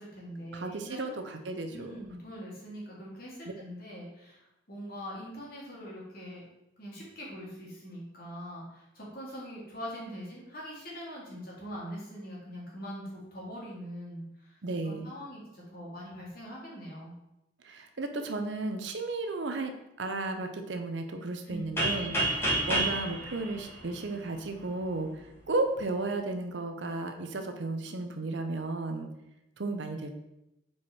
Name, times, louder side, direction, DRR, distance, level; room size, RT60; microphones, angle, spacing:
voice 1, 0.0-1.0 1.7-6.4 6.8-14.6 14.8-17.1 21.5-22.2, equal, 50° left, -5 dB, 2.1 m, -43 dB
voice 2, 0.5-2.1 14.6-15.1 17.6-29.1 29.6-30.1, right 2 dB, 70° right, 6 dB, 0.7 m, -34 dB
sound 1, 21.8-24.5, right 1 dB, 15° left, 1.5 m, -30 dB
4.7 x 4.7 x 4.2 m, 0.89 s
head